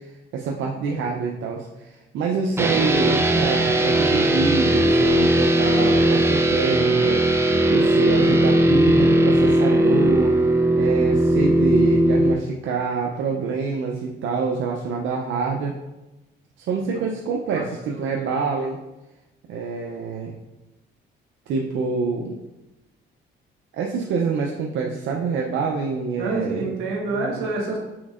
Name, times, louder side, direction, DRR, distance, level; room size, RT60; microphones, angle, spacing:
voice 1, 0.0-10.4 10.8-15.8 16.7-18.8 19.5-20.4 21.5-22.4 23.7-26.7 27.1-27.4, right 4 dB, 75° right, 0 dB, 0.5 m, -26 dB
sound 1, 2.6-12.3, right 1 dB, 10° right, 0.4 m, -18 dB
voice 2, 17.5-18.3 26.2-27.8, right 3 dB, 90° right, -1 dB, 1.2 m, -28 dB
6.0 x 3.5 x 2.4 m, 1.0 s
cardioid pair, 90°, 20 cm